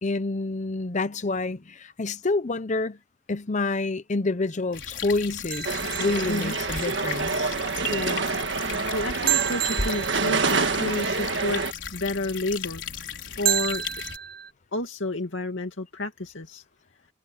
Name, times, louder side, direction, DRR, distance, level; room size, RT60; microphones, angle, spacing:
voice 1, 0.0-3.0 3.3-7.5, left 3 dB, 40° left, 0.8 m, -28 dB
sound 1, 4.7-14.2, left 6 dB, 70° left, 5.5 m, -36 dB
sound 2, 5.5-7.0 9.3-10.9 13.4-14.5, right 12 dB, 50° right, 0.7 m, -30 dB
sound 3, 5.6-11.7, right 4 dB, 65° right, 1.7 m, -27 dB
voice 2, 7.9-8.4 8.9-11.6 11.9-12.8 13.4-13.8 14.7-16.6, left 2 dB, 90° left, 2.4 m, -30 dB
head